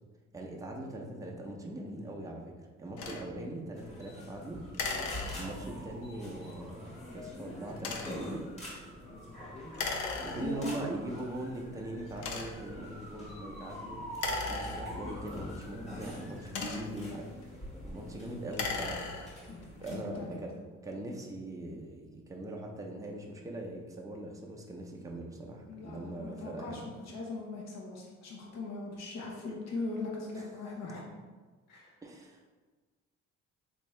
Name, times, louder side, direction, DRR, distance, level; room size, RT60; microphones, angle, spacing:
voice 1, 0.3-4.7 5.3-8.5 10.2-14.0 14.5-17.2 17.8-19.1 19.8-26.9 30.4-30.5 32.0-32.5, right 1 dB, 10° right, -1 dB, 0.5 m, -41 dB
sound 1, 3.0-3.3 4.7-5.8 7.7-8.3 9.7-10.8 11.4-11.5 12.2-12.8 14.1-15.3 16.2-17.1 18.4-19.5, left 4 dB, 75° left, 0.5 m, -37 dB
sound 2, 3.8-20.0, equal, 20° left, 1.3 m, -44 dB
voice 2, 10.4-10.7 16.5-17.2 19.4-20.4 25.7-31.1 31.7-31.9, left 3 dB, 60° left, -2 dB, 0.9 m, -40 dB
3.6 x 2.7 x 3.1 m, 1.3 s
cardioid pair, 90°, 30 cm